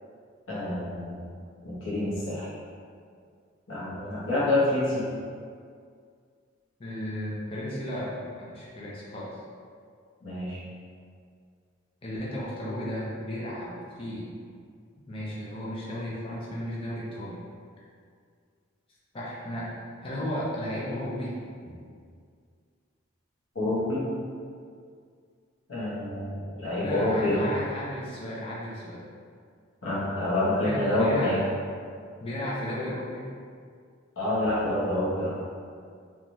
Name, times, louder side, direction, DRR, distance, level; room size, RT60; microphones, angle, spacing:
voice 1, 0.5-1.3 1.6-2.5 3.7-5.1 10.2-10.6 23.5-24.0 25.7-27.4 29.8-31.4 34.2-35.4, left 1 dB, 75° left, -9 dB, 0.8 m, -27 dB
voice 2, 6.8-9.3 12.0-14.3 15.1-17.4 19.1-19.7 20.0-21.3 21.6-21.8 26.8-29.0 30.6-31.4 32.2-33.3, equal, 30° left, -7 dB, 0.5 m, -34 dB
3.0 x 2.3 x 2.6 m, 2.2 s
head